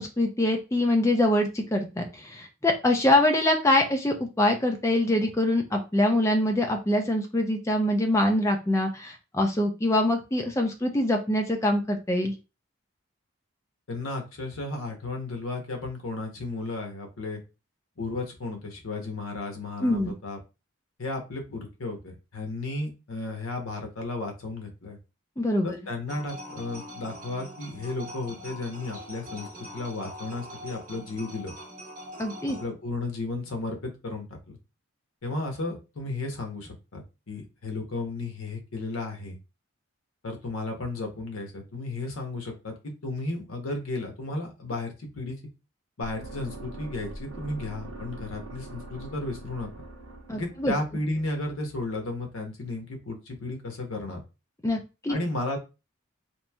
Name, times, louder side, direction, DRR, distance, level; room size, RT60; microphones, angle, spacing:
voice 1, 0.0-12.3 19.8-20.1 25.4-25.8 32.2-32.6 50.3-50.7 54.6-55.2, left 1 dB, 15° left, 4 dB, 0.4 m, -24 dB
voice 2, 13.9-17.4 18.0-20.4 21.0-25.0 25.6-29.5 29.7-31.5 32.6-34.6 35.2-39.4 40.2-45.4 46.0-49.7 50.3-54.2 55.1-55.6, left 2 dB, 85° left, 3 dB, 0.8 m, -34 dB
sound 1, 26.1-32.7, equal, 40° right, 0.7 m, -43 dB
sound 2, 46.0-52.1, right 2 dB, 85° right, 0.7 m, -43 dB
3.0 x 2.6 x 2.2 m, 0.29 s
head